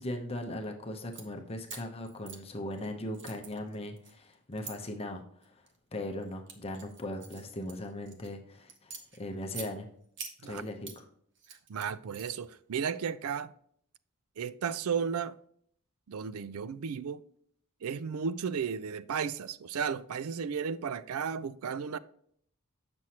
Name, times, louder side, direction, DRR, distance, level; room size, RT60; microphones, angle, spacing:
voice 1, 0.0-5.6 5.9-9.9 10.4-11.0, left 1 dB, 25° left, 0.8 m, -39 dB
sound 1, 1.0-1.3 1.6-2.9 3.1-4.7 5.4-5.8 6.2-8.3 8.7-9.7 10.2-11.0 11.3-12.5, right 6 dB, 55° right, 1.1 m, -46 dB
voice 2, 11.7-13.5 14.4-15.4 16.1-17.2 17.8-22.0, right 6 dB, 70° right, 0.4 m, -34 dB
7.5 x 6.1 x 2.8 m
head